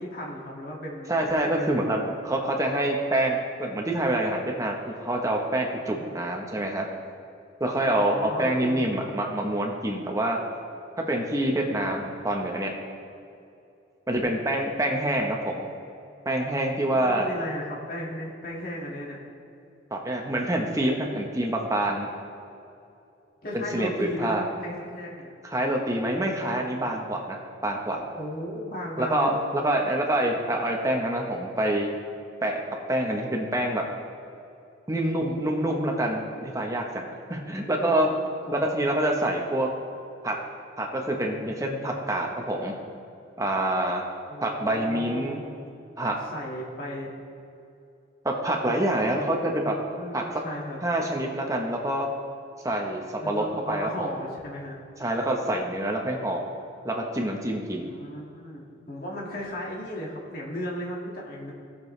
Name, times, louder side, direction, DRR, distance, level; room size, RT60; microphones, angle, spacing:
voice 1, 0.0-1.1 1.4-2.0 7.9-9.0 16.9-19.2 23.4-25.3 28.1-29.6 37.3-38.1 38.5-38.6 44.3-45.6 46.3-47.1 48.7-48.8 50.0-50.8 53.2-54.8 57.8-61.5, equal, 50° left, -3 dB, 2.0 m, -35 dB
voice 2, 1.1-6.9 7.6-10.4 11.1-12.7 14.1-15.7 16.2-17.3 19.9-22.1 23.5-24.4 25.4-28.0 29.0-31.9 32.4-33.8 34.9-38.1 38.5-39.7 40.2-40.4 40.8-42.7 43.4-44.0 44.4-45.4 46.0-46.2 48.2-49.8 50.1-50.2 50.8-52.1 52.6-54.1 55.0-56.4 56.8-57.9, right 1 dB, 15° right, 1 dB, 1.0 m, -26 dB
17.0 x 7.0 x 3.3 m, 2.7 s
head